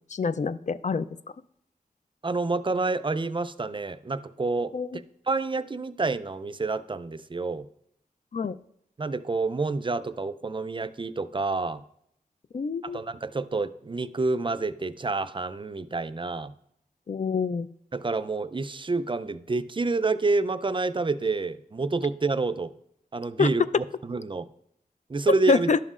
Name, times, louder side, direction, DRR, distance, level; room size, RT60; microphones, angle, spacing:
voice 1, 0.1-1.1 4.7-5.0 8.3-8.6 12.5-13.0 17.1-17.7 23.4-23.5 25.5-25.8, left 4 dB, 50° left, 14 dB, 0.4 m, -26 dB
voice 2, 2.2-4.7 5.3-7.6 9.0-11.8 12.8-16.5 17.9-22.7 23.1-23.6 24.0-24.5 25.1-25.7, right 3 dB, 30° right, 13 dB, 0.4 m, -28 dB
11.5 x 7.3 x 2.4 m, 0.72 s
wide cardioid pair, 55°, 16 cm